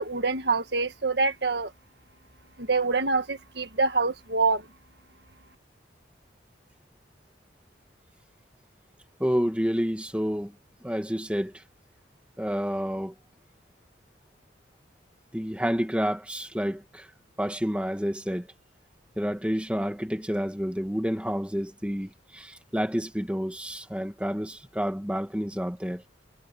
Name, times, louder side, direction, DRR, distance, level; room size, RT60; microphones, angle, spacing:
voice 1, 0.0-1.7 2.6-4.7, right 4 dB, 60° right, 1.7 m, -26 dB
voice 2, 9.2-10.5 10.8-11.6 12.4-13.1 15.3-17.1 17.4-18.5 19.2-26.0, equal, 5° right, 1.9 m, -29 dB
head